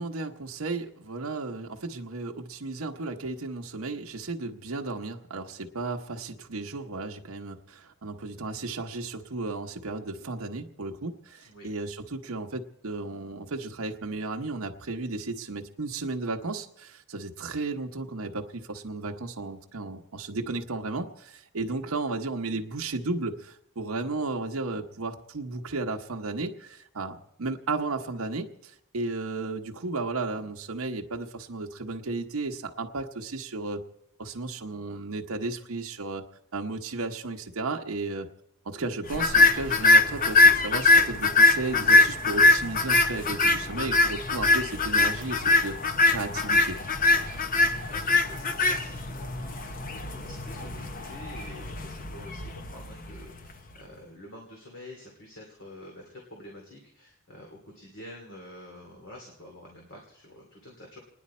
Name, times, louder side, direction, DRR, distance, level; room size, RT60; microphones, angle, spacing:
voice 1, 0.0-33.8 34.2-36.2 36.5-38.3 38.6-45.8 46.1-46.8, right 3 dB, 70° right, 3 dB, 0.9 m, -34 dB
sound 1, 39.1-53.5, left 2 dB, 40° left, 0.7 m, -22 dB
voice 2, 47.1-61.0, left 1 dB, 60° left, -1 dB, 2.5 m, -48 dB
29.5 x 10.0 x 4.2 m, 0.82 s
head